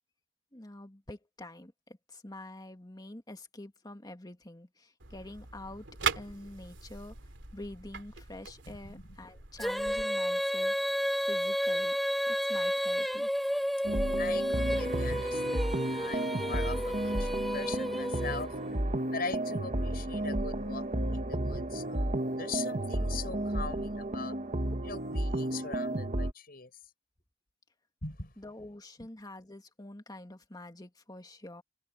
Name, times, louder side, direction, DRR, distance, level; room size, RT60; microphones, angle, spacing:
voice 1, 0.5-5.8 6.2-7.2 7.5-11.0 11.3-12.0 12.3-13.3 28.4-31.6, left 1 dB, 20° left, 2.1 m, -46 dB
sound 1, 5.0-10.0, right 6 dB, 85° right, 3.0 m, -40 dB
Female singing, 9.6-18.7, equal, ahead, 0.9 m, -31 dB
sound 2, 13.8-26.3, right 1 dB, 40° right, 1.6 m, -32 dB
voice 2, 14.2-18.5 19.1-24.4 24.8-26.7 28.0-28.3, left 4 dB, 55° left, 5.6 m, -41 dB
head